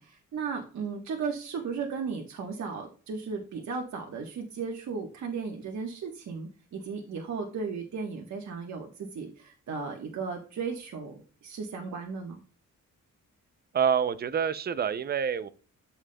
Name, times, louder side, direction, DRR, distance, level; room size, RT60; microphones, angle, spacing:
voice 1, 0.0-12.4, right 5 dB, 65° right, 1 dB, 1.2 m, -35 dB
voice 2, 13.7-15.5, right 7 dB, 35° right, 14 dB, 0.4 m, -27 dB
12.5 x 7.0 x 2.2 m, 0.39 s
wide cardioid pair, 160°, 30 cm